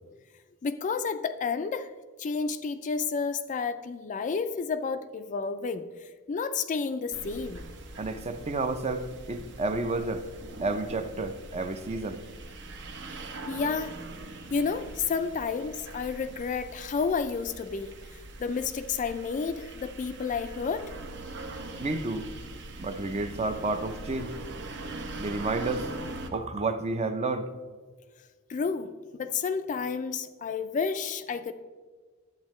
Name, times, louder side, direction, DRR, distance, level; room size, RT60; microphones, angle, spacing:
voice 1, 0.6-1.9 2.2-7.7 13.5-14.0 14.5-17.9 18.4-20.9 28.5-31.5, left 5 dB, 35° left, 10 dB, 0.3 m, -31 dB
sound 1, 7.1-26.3, right 2 dB, 60° right, 0.8 m, -42 dB
voice 2, 8.0-10.3 10.6-12.2 21.8-22.3 22.8-24.4 25.2-25.9 26.3-27.5, right 3 dB, 30° right, 9 dB, 0.5 m, -31 dB
10.5 x 8.1 x 3.1 m, 1.4 s
head